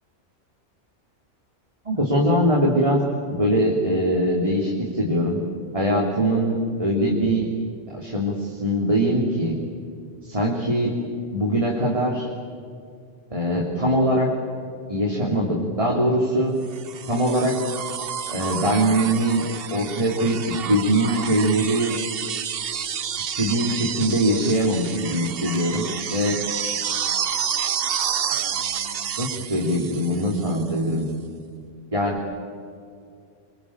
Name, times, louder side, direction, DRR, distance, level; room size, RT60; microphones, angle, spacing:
voice 1, 1.8-3.0 3.4-5.4 5.7-7.5 7.9-9.6 10.2-11.0 11.3-12.3 13.3-14.3 14.9-16.5 17.1-17.6 18.3-19.4 19.7-22.0 23.2-26.4 28.5-31.1 31.9-32.2, equal, 25° right, -2 dB, 3.3 m, -22 dB
sound 1, 16.7-30.7 32.2-32.3, right 8 dB, 55° right, 1.0 m, -29 dB
24.5 x 24.0 x 8.8 m, 2.4 s
omnidirectional pair, 1.2 m